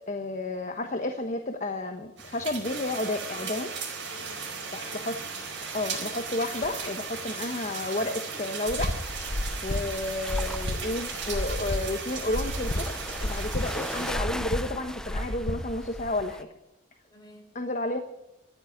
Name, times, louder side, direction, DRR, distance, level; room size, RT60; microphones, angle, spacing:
voice 1, 0.0-3.7 4.9-5.2 5.7-9.0 9.6-16.5 17.5-18.0, left 2 dB, 40° left, 5 dB, 1.1 m, -31 dB
sound 1, 2.2-14.1, right 5 dB, 70° right, 4.6 m, -37 dB
voice 2, 3.3-3.7 4.1-5.4 17.0-17.5, equal, 20° left, 1 dB, 5.2 m, -49 dB
sound 2, 4.4-16.4, equal, 5° left, 0.7 m, -41 dB
sound 3, 8.7-16.1, left 1 dB, 65° left, 1.3 m, -32 dB
13.5 x 10.5 x 9.7 m, 0.94 s
head